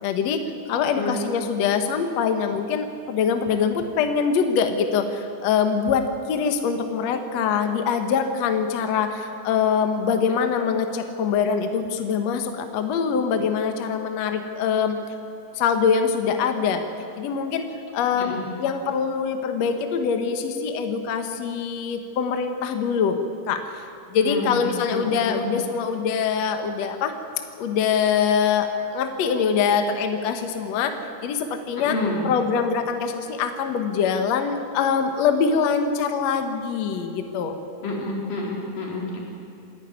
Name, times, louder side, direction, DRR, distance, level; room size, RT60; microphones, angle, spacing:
voice 1, 0.0-15.0 15.5-16.8 17.2-17.7 17.9-23.2 23.5-27.1 27.6-30.9 31.2-32.0 32.2-37.6, left 6 dB, 60° left, 6 dB, 2.2 m, -24 dB
voice 2, 24.2-25.5 31.8-32.3 37.8-39.2, left 2 dB, 90° left, -2 dB, 5.4 m, -29 dB
26.5 x 11.5 x 9.7 m, 2.7 s
omnidirectional pair, 3.8 m